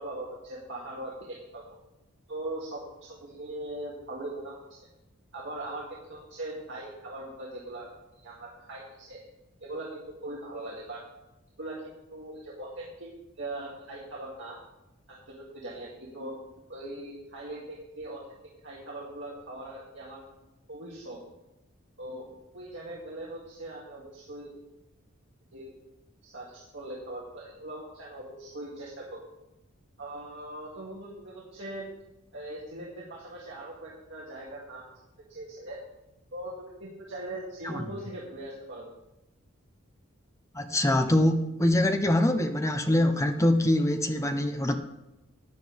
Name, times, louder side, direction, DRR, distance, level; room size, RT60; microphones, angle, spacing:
voice 1, 0.0-1.8 2.3-4.9 5.3-7.9 8.1-9.2 9.6-11.0 11.6-13.1 13.4-14.6 15.1-16.3 16.7-18.3 18.6-20.2 20.7-21.2 22.0-24.5 25.5-29.2 30.0-31.9 32.3-34.8 35.3-35.8 36.3-38.9, right 1 dB, 60° right, -6 dB, 2.2 m, -40 dB
voice 2, 40.5-44.7, left 1 dB, 15° left, 7 dB, 0.7 m, -24 dB
15.0 x 10.0 x 3.5 m, 0.94 s
head